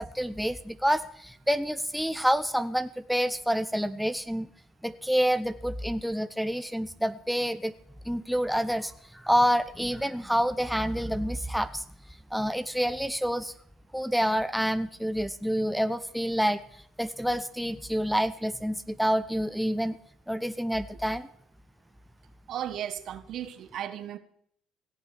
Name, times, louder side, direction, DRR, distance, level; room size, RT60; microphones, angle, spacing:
voice 1, 0.0-4.5 4.8-7.7 8.0-11.8 12.3-13.5 13.9-16.6 17.0-20.0 20.3-21.3, equal, ahead, 0.8 m, -28 dB
voice 2, 22.5-24.2, right 10 dB, 60° right, 1.4 m, -35 dB
17.0 x 7.1 x 9.9 m
supercardioid pair, 85°, 0 cm